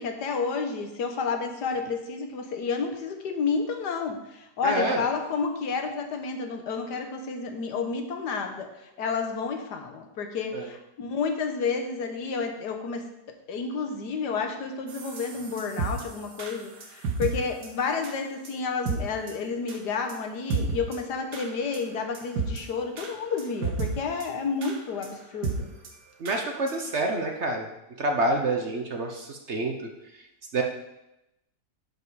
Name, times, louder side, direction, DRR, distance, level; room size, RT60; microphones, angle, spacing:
voice 1, 0.0-8.7 9.0-13.1 13.5-25.7, left 5 dB, 75° left, 5 dB, 1.6 m, -30 dB
voice 2, 4.6-5.0 10.5-10.7 26.2-27.7 28.0-29.7 30.5-30.6, right 2 dB, 50° right, 3 dB, 1.0 m, -27 dB
sound 1, 14.9-17.3 17.6-17.7 18.0-18.1 18.5-18.6 18.9-19.0 19.3-19.4 19.7-19.8 20.1-20.2 20.5-21.0 21.3-21.5 21.7-21.8 22.2-22.6 23.0-23.1 23.4-23.9 24.2-24.3 24.6-24.8 25.0-25.1 25.4-25.6 25.8-25.9 26.3-26.4 26.7-26.8 27.1-27.2, right 5 dB, 80° right, 1.9 m, -31 dB
10.5 x 5.5 x 4.8 m, 0.91 s
omnidirectional pair, 1.8 m